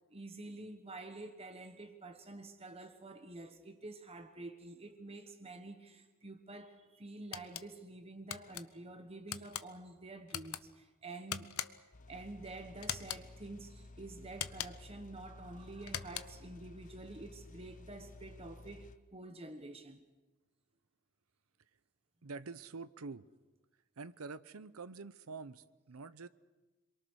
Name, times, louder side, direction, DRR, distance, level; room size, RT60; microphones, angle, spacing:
voice 1, 0.1-11.6 12.1-20.0, right 2 dB, 25° right, 1.3 m, -49 dB
sound 1, 7.3-7.7 8.3-8.6 9.3-9.7 10.3-10.6 11.3-11.9 12.8-13.3 14.3-14.9 15.8-16.5, left 10 dB, 85° left, 0.8 m, -41 dB
sound 2, 11.9-19.0, left 2 dB, 35° left, 0.8 m, -54 dB
voice 2, 22.2-23.3 24.0-26.3, right 4 dB, 85° right, 0.8 m, -46 dB
27.5 x 22.5 x 6.4 m
head